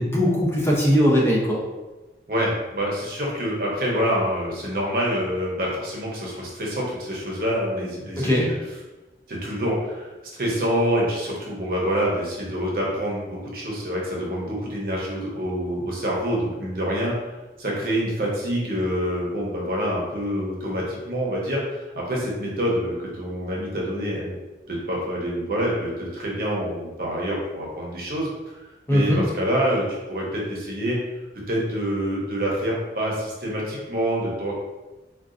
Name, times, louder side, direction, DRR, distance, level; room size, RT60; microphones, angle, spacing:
voice 1, 0.0-1.6 8.2-8.5 28.9-29.2, equal, 15° left, -5 dB, 0.6 m, -20 dB
voice 2, 2.3-8.5 9.3-17.1 17.6-24.4 24.7-28.5 28.9-31.0 31.3-34.5, equal, 50° right, -3 dB, 0.7 m, -26 dB
3.7 x 2.4 x 2.5 m, 1.1 s
head